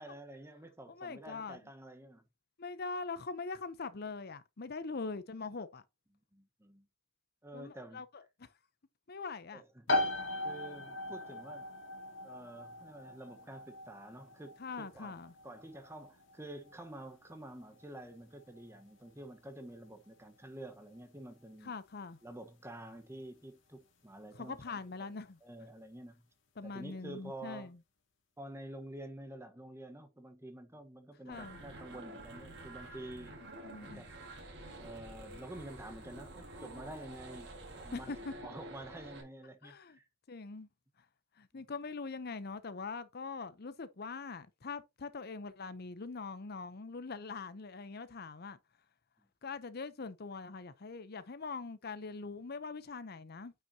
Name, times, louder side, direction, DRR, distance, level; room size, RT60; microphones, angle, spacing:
voice 1, 0.0-2.2 6.3-6.9 7.4-8.0 9.5-10.2 10.4-11.7 12.2-15.2 15.4-21.7 22.2-25.1 25.4-26.2 26.6-27.7 28.4-34.1 34.8-38.1 38.4-40.1 41.5-41.7, right 1 dB, 15° right, 1.1 m, -49 dB
voice 2, 0.9-1.6 2.6-5.8 7.5-8.5 9.1-9.6 14.6-15.3 21.6-22.2 24.3-25.4 26.6-27.8 31.3-31.6 33.6-34.0 37.9-38.3 39.6-40.0 40.3-40.7 41.4-48.6 49.4-53.5, left 4 dB, 50° left, 0.7 m, -42 dB
sound 1, 9.9-24.4, left 1 dB, 70° left, 2.2 m, -41 dB
sound 2, 31.3-39.2, right 1 dB, 60° right, 4.1 m, -49 dB
9.1 x 5.7 x 2.8 m
head